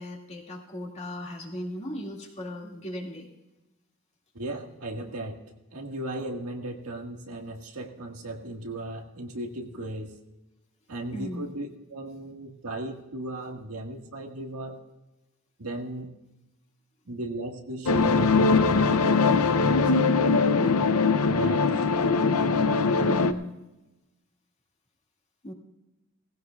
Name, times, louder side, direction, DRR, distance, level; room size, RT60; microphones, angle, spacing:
voice 1, 0.0-3.3 11.1-11.5 22.9-23.5 25.4-25.5, left 1 dB, 30° left, -1 dB, 2.2 m, -37 dB
voice 2, 4.3-5.4 5.7-10.1 10.9-14.8 15.6-16.1 17.1-18.3 18.6-20.9 21.3-21.9, right 1 dB, 80° right, 2 dB, 1.8 m, -36 dB
sound 1, 17.9-23.3, left 4 dB, 80° left, 0.7 m, -21 dB
19.0 x 16.0 x 2.4 m, 1.0 s
head